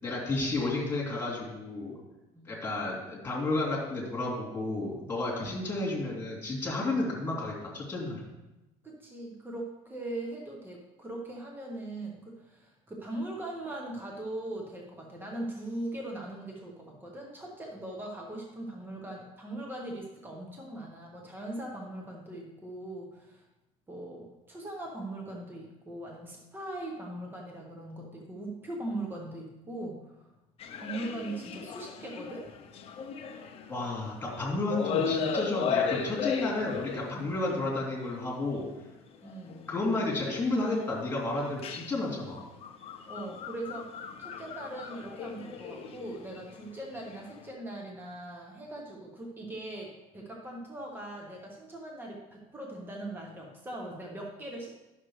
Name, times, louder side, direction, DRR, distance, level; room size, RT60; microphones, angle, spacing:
voice 1, 0.0-1.9 2.4-8.2 33.7-38.6 39.7-42.4, left 2 dB, 10° left, -3 dB, 3.0 m, -32 dB
voice 2, 8.8-23.4 23.9-30.3 30.7-32.4 39.2-39.7 43.1-54.7, right 1 dB, 15° right, -1 dB, 1.3 m, -40 dB
sound 1, 30.6-34.4 34.7-37.6 38.2-38.3 39.3-39.6 40.2-40.8 41.4-47.4, left 6 dB, 40° left, 0.8 m, -35 dB
11.0 x 6.4 x 3.3 m, 0.98 s
cardioid pair, 140°, 16 cm